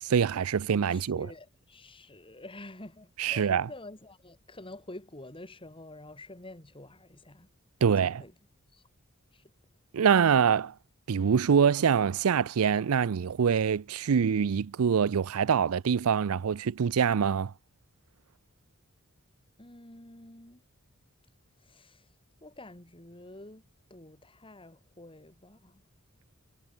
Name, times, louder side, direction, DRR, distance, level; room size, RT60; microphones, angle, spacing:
voice 1, 0.0-1.3 3.2-3.7 7.8-8.2 9.9-10.7 11.1-17.5, right 7 dB, 80° right, 0.5 m, -25 dB
voice 2, 0.9-7.5 7.9-8.3 8.7-8.8 9.3-9.4 19.6-20.6 21.6-22.1 22.4-23.6 23.9-25.8, left 2 dB, 25° left, 3.8 m, -48 dB
head